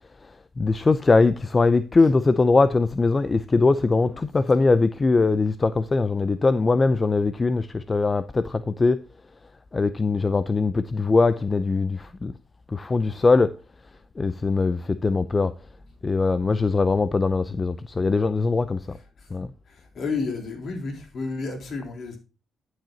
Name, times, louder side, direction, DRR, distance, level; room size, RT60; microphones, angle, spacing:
voice 1, 0.2-9.0 9.7-12.3 12.7-13.6 14.2-15.5 16.0-19.0 19.3-19.5, left 3 dB, 30° left, 0.5 m, -21 dB
voice 2, 19.9-22.2, left 4 dB, 55° left, 3.7 m, -30 dB
12.0 x 7.9 x 2.8 m
cardioid pair, 90°, 0 cm